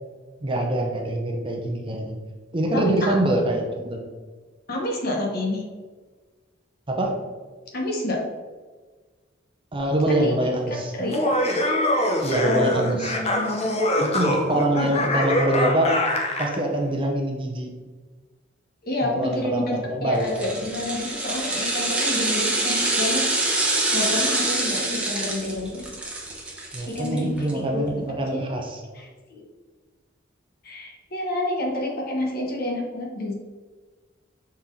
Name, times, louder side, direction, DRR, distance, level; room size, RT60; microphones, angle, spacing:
voice 1, 0.4-2.1 2.5-4.1 6.9-7.2 9.7-10.9 12.2-13.1 14.0-16.0 16.4-17.7 19.0-20.4 26.7-28.8, right 1 dB, 25° right, 1 dB, 0.8 m, -24 dB
voice 2, 2.7-3.1 4.7-5.6 7.7-8.2 10.1-10.3 10.7-11.2 12.4-13.7 18.8-23.2 23.9-25.9 26.9-27.8 28.3-28.5 28.9-29.4 30.6-33.3, left 1 dB, 55° left, 0 dB, 1.3 m, -29 dB
Laughter, 11.0-16.6, left 1 dB, 35° left, 0.8 m, -24 dB
sound 1, 20.2-27.5 27.8-27.9, right 2 dB, 5° right, 1.1 m, -25 dB
5.9 x 4.3 x 3.8 m, 1.4 s
head